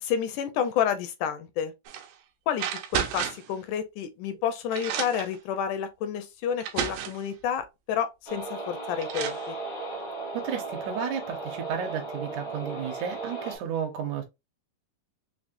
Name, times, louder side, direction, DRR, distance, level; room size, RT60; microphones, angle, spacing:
voice 1, 0.0-1.7 2.5-2.7 2.9-9.6, left 8 dB, 80° left, 1.9 m, -30 dB
sound 1, 1.9-2.1 2.6-3.5 4.3-4.4 4.7-5.4 6.2-6.3 6.6-7.3 8.6-8.7 9.0-9.4, right 9 dB, 90° right, 2.4 m, -32 dB
sound 2, 8.3-13.6, right 3 dB, 65° left, 0.9 m, -36 dB
voice 2, 10.3-14.2, right 8 dB, 75° right, 2.1 m, -33 dB
5.9 x 2.0 x 2.5 m
omnidirectional pair, 3.9 m